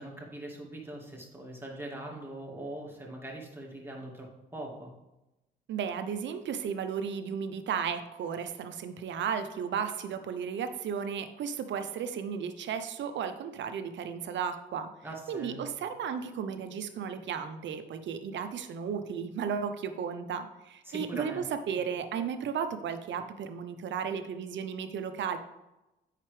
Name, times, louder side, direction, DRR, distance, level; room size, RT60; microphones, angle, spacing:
voice 1, 0.0-4.9 15.0-15.6 20.8-21.4, right 1 dB, 10° right, -3 dB, 2.3 m, -41 dB
voice 2, 5.7-14.9 15.3-25.4, right 7 dB, 65° right, 9 dB, 0.8 m, -34 dB
8.4 x 5.8 x 3.3 m, 0.99 s
hypercardioid pair, 50°, 21 cm